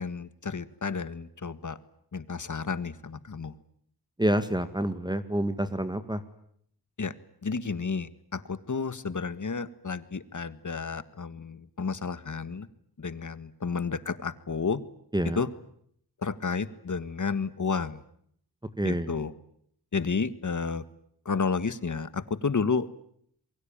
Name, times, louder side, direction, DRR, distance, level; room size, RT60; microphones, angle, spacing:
voice 1, 0.0-1.8 2.1-3.6 7.0-7.1 7.4-12.7 13.0-14.8 15.4-15.5 16.2-18.0 18.8-19.3 19.9-20.8 21.3-22.9, left 5 dB, 50° left, 14 dB, 1.7 m, -31 dB
voice 2, 4.2-6.2 15.1-15.4 18.8-19.1, right 1 dB, 10° right, 10 dB, 1.9 m, -28 dB
28.0 x 22.5 x 8.9 m, 0.68 s
wide cardioid pair, 75°, 39 cm